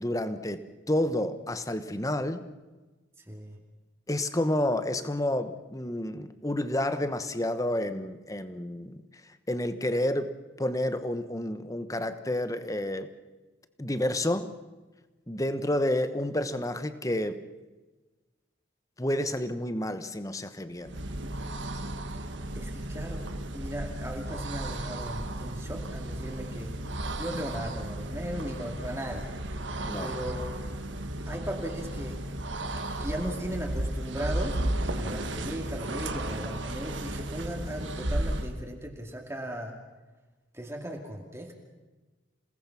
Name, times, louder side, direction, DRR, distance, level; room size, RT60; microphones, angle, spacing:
voice 1, 0.0-2.4 4.1-9.0 9.5-10.3 10.6-13.1 13.8-14.5 15.3-17.4 19.0-21.0 29.8-30.1, left 1 dB, 15° left, 11 dB, 1.0 m, -30 dB
voice 2, 3.3-3.6 21.8-21.9 22.5-26.7 27.2-29.3 30.0-30.6 31.3-32.2 33.0-34.6 34.9-39.7 40.5-41.5, right 1 dB, 15° right, 1 dB, 2.3 m, -37 dB
sound 1, 20.8-38.6, right 1 dB, 70° right, 1.6 m, -34 dB
28.0 x 18.5 x 5.9 m, 1.2 s
head